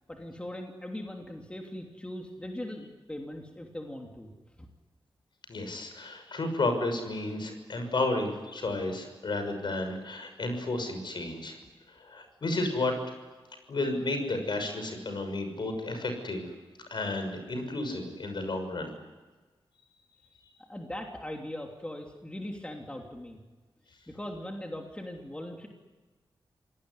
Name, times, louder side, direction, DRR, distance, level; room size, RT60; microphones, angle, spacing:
voice 1, 0.1-4.3 4.6-4.7 20.7-23.4 24.1-25.7, left 1 dB, 10° left, 1 dB, 3.1 m, -40 dB
voice 2, 5.5-11.6 11.9-13.0 13.7-16.5 16.9-18.9, left 2 dB, 60° left, 6 dB, 6.2 m, -32 dB
26.5 x 18.5 x 9.9 m, 1.3 s
wide cardioid pair, 90°, 9 cm